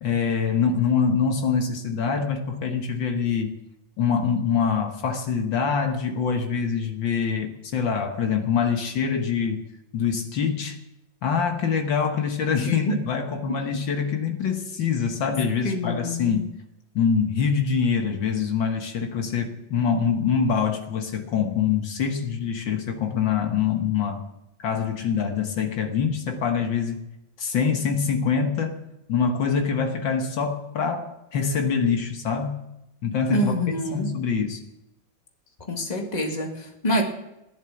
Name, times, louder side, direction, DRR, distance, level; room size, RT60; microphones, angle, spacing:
voice 1, 0.0-3.5 4.0-9.6 9.9-10.8 11.2-16.5 17.0-24.2 24.6-27.0 27.4-28.8 29.1-32.7 33.0-34.6, left 6 dB, 70° left, 4 dB, 2.0 m, -25 dB
voice 2, 12.7-13.0 13.5-13.6 15.6-16.4 33.3-34.1 35.7-37.0, left 1 dB, 20° left, 2 dB, 2.0 m, -26 dB
16.0 x 10.5 x 7.2 m, 0.89 s
omnidirectional pair, 2.2 m